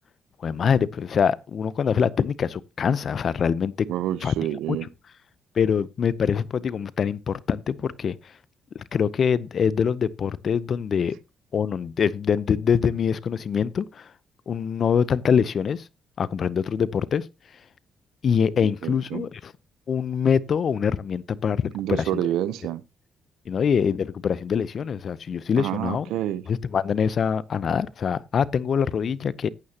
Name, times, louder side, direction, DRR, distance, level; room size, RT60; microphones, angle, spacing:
voice 1, 0.4-3.7 4.2-4.3 4.7-4.8 5.6-8.2 8.7-11.2 11.5-14.1 14.5-15.8 16.2-17.3 18.2-19.5 19.9-22.2 23.5-26.1 26.5-29.5, left 7 dB, 55° left, 0.7 m, -24 dB
voice 2, 3.9-4.9 18.8-19.3 21.7-22.8 25.6-26.4, right 12 dB, 85° right, 0.7 m, -28 dB
14.5 x 9.5 x 2.9 m
supercardioid pair, 60°, 0 cm